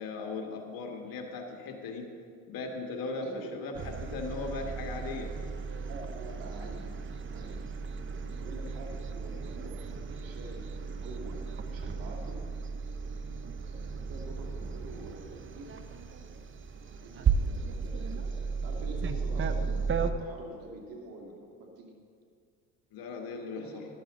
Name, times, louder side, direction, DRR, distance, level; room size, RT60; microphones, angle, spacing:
voice 1, 0.0-2.1 2.5-5.3 22.9-23.9, left 3 dB, 60° left, 2 dB, 2.0 m, -38 dB
voice 2, 3.2-3.5 5.8-7.0 7.3-7.7 8.2-11.4 11.7-12.4 13.6-15.8 17.0-21.9 23.5-23.9, right 2 dB, 65° right, 0 dB, 2.4 m, -46 dB
sound 1, 3.5-13.5, left 1 dB, 15° left, 1.4 m, -56 dB
sound 2, 3.7-20.1, right 5 dB, 30° right, 0.8 m, -35 dB
13.0 x 12.0 x 3.9 m, 2.2 s
supercardioid pair, 85°, 38 cm